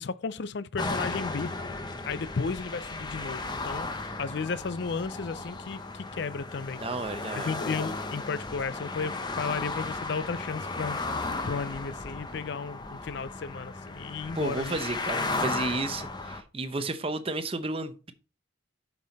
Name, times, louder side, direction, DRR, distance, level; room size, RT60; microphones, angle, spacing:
voice 1, 0.0-1.5 2.1-3.9 4.2-6.8 7.3-11.0 11.4-14.8, left 5 dB, 55° left, 0.4 m, -34 dB
sound 1, 0.8-16.4, left 3 dB, 20° left, 0.8 m, -35 dB
voice 2, 6.8-7.5 14.3-18.1, right 2 dB, 30° right, 0.7 m, -32 dB
7.4 x 5.8 x 4.0 m
head